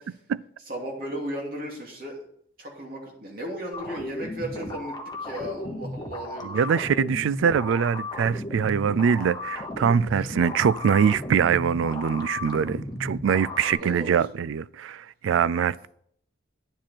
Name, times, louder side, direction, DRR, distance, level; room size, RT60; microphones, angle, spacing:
voice 1, 0.7-2.2 2.6-6.8 10.1-10.3 13.6-14.2, right 1 dB, 50° right, 2.8 m, -35 dB
sound 1, 3.7-13.7, left 2 dB, 20° left, 1.0 m, -35 dB
voice 2, 6.4-15.9, right 7 dB, 85° right, 0.3 m, -23 dB
10.5 x 7.4 x 4.4 m
head